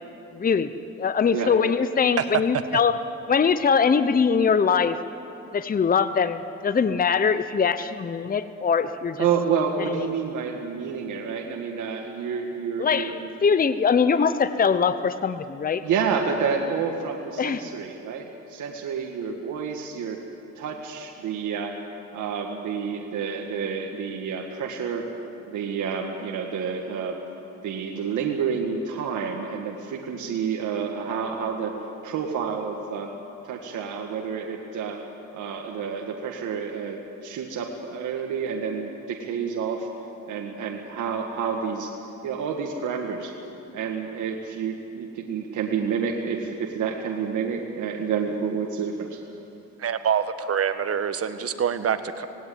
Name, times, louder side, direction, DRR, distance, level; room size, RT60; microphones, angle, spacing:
voice 1, 0.3-0.7 1.0-3.0 3.3-5.0 5.5-9.2 9.9-10.0 12.8-15.8 17.4-17.6, left 6 dB, 30° left, 12 dB, 0.8 m, -22 dB
voice 2, 9.2-13.3 15.8-20.3 20.5-21.8 22.1-25.1 25.5-27.2 27.6-33.1 33.4-35.0 35.3-39.9 40.3-41.9 42.2-43.3 43.7-49.2, right 6 dB, 75° right, 1 dB, 1.8 m, -29 dB
voice 3, 49.8-52.3, right 7 dB, 50° right, 10 dB, 1.4 m, -25 dB
19.0 x 17.0 x 9.3 m, 2.8 s
cardioid pair, 90°, 30 cm